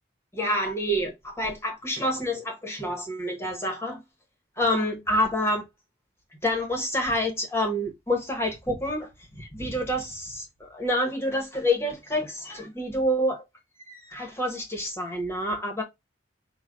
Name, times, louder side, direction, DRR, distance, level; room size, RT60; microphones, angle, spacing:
voice 1, 0.3-4.0 4.6-5.6 6.4-13.4 13.8-15.8, equal, 15° left, 0.9 m, -28 dB
4.9 x 2.1 x 3.7 m
head